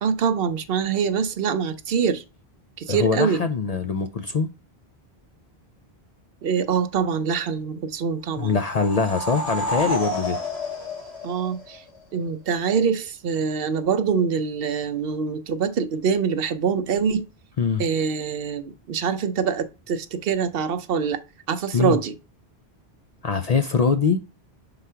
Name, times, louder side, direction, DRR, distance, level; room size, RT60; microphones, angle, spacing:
voice 1, 0.0-2.2 2.8-3.4 6.4-8.6 11.2-11.8 12.1-17.2 17.8-21.2 21.5-22.1, right 6 dB, 65° right, 0.8 m, -24 dB
voice 2, 2.9-4.5 8.4-10.4 17.6-17.8 21.7-22.0 23.2-24.2, left 5 dB, 50° left, 0.5 m, -23 dB
sound 1, 8.4-12.0, left 1 dB, 80° left, 2.1 m, -29 dB
4.7 x 3.9 x 5.5 m
omnidirectional pair, 1.1 m